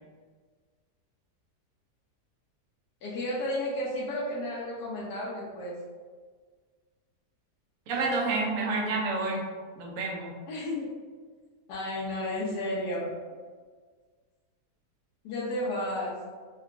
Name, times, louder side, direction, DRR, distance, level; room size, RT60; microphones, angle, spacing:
voice 1, 3.0-5.8 10.5-10.9 11.7-13.1 15.2-16.2, left 1 dB, 85° left, -7 dB, 1.2 m, -32 dB
voice 2, 7.9-9.4 9.8-10.3, right 3 dB, 65° right, -1 dB, 1.0 m, -29 dB
3.8 x 2.2 x 2.4 m, 1.5 s
omnidirectional pair, 1.7 m